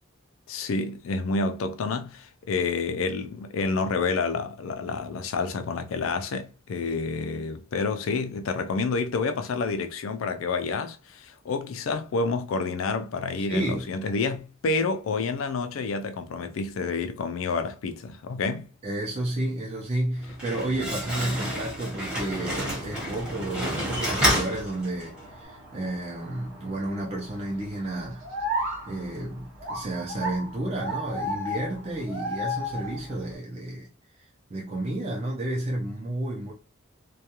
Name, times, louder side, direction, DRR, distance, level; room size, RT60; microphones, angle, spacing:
voice 1, 0.5-18.7, left 4 dB, 85° left, 0.4 m, -29 dB
voice 2, 13.4-13.8 18.8-28.3 28.9-33.9 34.2-36.5, right 1 dB, 30° right, 0.5 m, -31 dB
Slam, 20.2-25.3, equal, 5° right, 0.9 m, -29 dB
sound 1, 22.6-33.4, equal, 85° right, 0.8 m, -36 dB
2.3 x 2.2 x 2.8 m
head